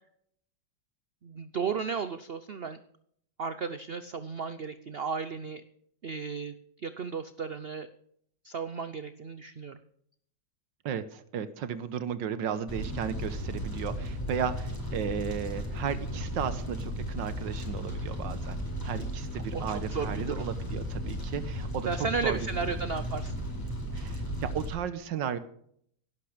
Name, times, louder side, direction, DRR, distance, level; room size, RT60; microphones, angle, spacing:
voice 1, 1.2-2.8 3.4-5.6 6.0-6.6 6.8-7.9 8.4-9.8 16.1-16.2 19.5-20.5 21.9-23.3, right 5 dB, 55° right, 12 dB, 0.7 m, -34 dB
voice 2, 10.8-18.6 18.8-21.9 22.2-22.4 23.9-25.4, right 8 dB, 85° right, 13 dB, 1.7 m, -34 dB
Fire, 12.7-24.7, equal, 10° left, 4.4 m, -35 dB
17.5 x 11.5 x 5.1 m, 0.66 s
omnidirectional pair, 2.0 m